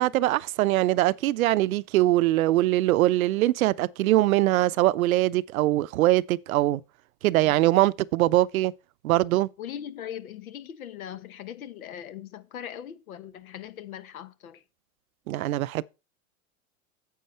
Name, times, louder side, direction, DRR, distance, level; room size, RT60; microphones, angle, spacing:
voice 1, 0.0-6.8 7.2-8.7 9.0-9.5 15.3-15.8, right 16 dB, 80° right, 0.6 m, -22 dB
voice 2, 9.6-14.6, left 10 dB, 85° left, 1.3 m, -40 dB
9.4 x 7.5 x 4.3 m
hypercardioid pair, 110°, 41 cm